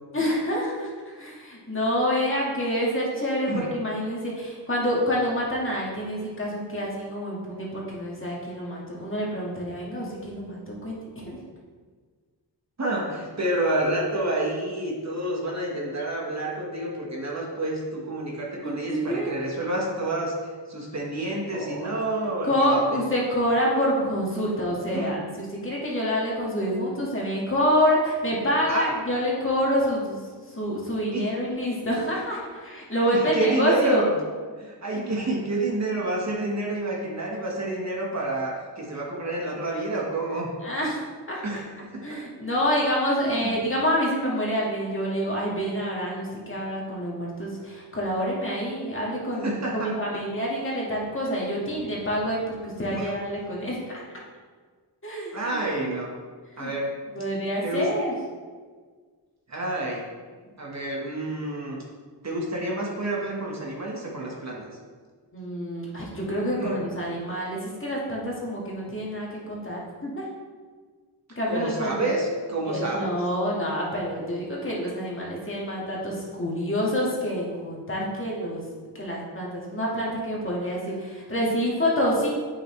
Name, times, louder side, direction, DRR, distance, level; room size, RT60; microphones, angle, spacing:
voice 1, 0.1-11.4 18.6-19.4 21.5-22.1 22.4-30.2 30.4-34.1 34.9-35.0 40.6-41.0 41.3-41.6 42.0-54.0 55.0-55.6 56.6-56.7 57.1-58.1 65.3-70.3 71.4-72.0 72.7-78.6 78.9-82.3, equal, 30° left, -4 dB, 2.0 m, -27 dB
voice 2, 12.8-20.3 20.7-22.8 24.9-25.1 28.7-28.9 31.1-31.3 33.0-34.1 34.6-40.5 41.4-42.2 43.4-43.5 49.4-49.9 52.9-53.1 55.3-56.1 56.6-56.9 57.6-57.9 59.5-60.0 60.6-61.8 62.2-64.7 66.6-66.8 71.5-73.1, right 2 dB, 40° right, -2 dB, 1.5 m, -29 dB
8.4 x 5.7 x 3.3 m, 1.5 s
wide cardioid pair, 95°, 42 cm